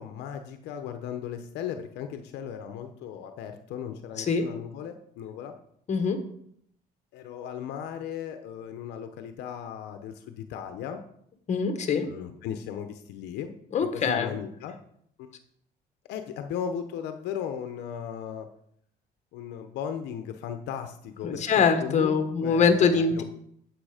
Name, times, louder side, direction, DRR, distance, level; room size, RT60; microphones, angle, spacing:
voice 1, 0.0-5.5 7.1-11.0 12.1-13.5 13.9-14.8 15.2-15.3 16.1-18.5 19.3-23.2, left 8 dB, 85° left, 8 dB, 0.9 m, -36 dB
voice 2, 5.9-6.2 11.5-12.1 13.7-14.3 21.2-23.2, left 5 dB, 45° left, 7 dB, 1.5 m, -23 dB
8.9 x 8.0 x 5.0 m, 0.69 s
cardioid pair, 110°, 17 cm